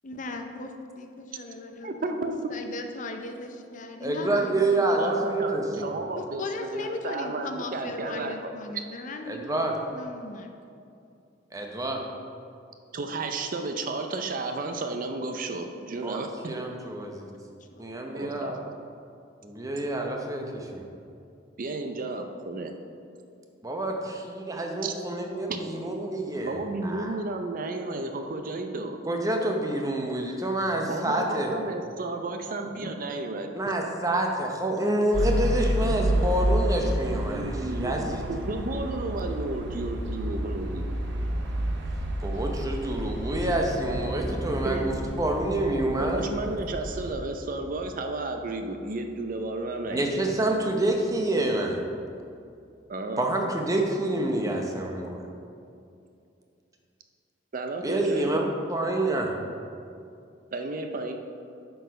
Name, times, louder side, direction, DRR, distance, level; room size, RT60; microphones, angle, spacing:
voice 1, 0.0-0.7 1.0-5.1 6.2-9.6 9.9-10.5 17.7-17.9, left 2 dB, 45° left, 5 dB, 0.5 m, -37 dB
voice 2, 1.8-2.4 5.0-6.4 6.7-8.8 12.9-16.3 18.1-18.5 21.6-22.7 24.8-24.9 25.5-25.6 26.4-29.0 30.9-33.5 37.1-38.0 38.3-40.9 44.6-44.9 45.9-50.1 52.9-53.3 57.5-58.5 60.5-61.1, right 2 dB, 45° right, 5 dB, 0.5 m, -33 dB
voice 3, 4.0-5.9 9.3-9.7 11.5-12.0 16.0-17.3 17.8-18.6 19.4-20.8 23.6-27.1 29.0-31.5 33.5-38.2 42.2-46.2 49.9-51.8 53.2-55.2 57.8-59.4, right 1 dB, 20° right, 2 dB, 0.8 m, -28 dB
sound 1, 35.1-47.1, right 1 dB, 70° right, 0.8 m, -30 dB
sound 2, 43.4-50.5, equal, 5° left, 1.3 m, -40 dB
7.8 x 4.7 x 5.1 m, 2.5 s
head